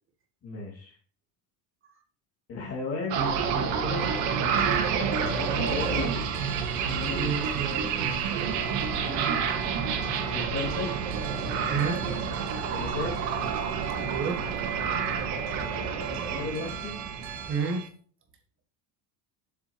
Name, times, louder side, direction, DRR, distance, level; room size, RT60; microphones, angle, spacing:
voice 1, 0.4-0.9 2.5-4.9 5.6-6.3 6.8-7.6 10.3-10.9 12.7-13.2 16.1-17.0, left 3 dB, 30° left, 0 dB, 2.7 m, -35 dB
sound 1, 3.1-17.5, right 6 dB, 90° right, 2.1 m, -29 dB
sound 2, 3.9-17.9, right 9 dB, 50° right, 1.4 m, -38 dB
voice 2, 7.0-8.6 9.0-9.2 11.7-12.0 14.0-14.4 17.5-17.8, right 5 dB, 25° right, 4 dB, 1.5 m, -32 dB
7.8 x 7.4 x 3.1 m, 0.44 s
cardioid pair, 165°, 46 cm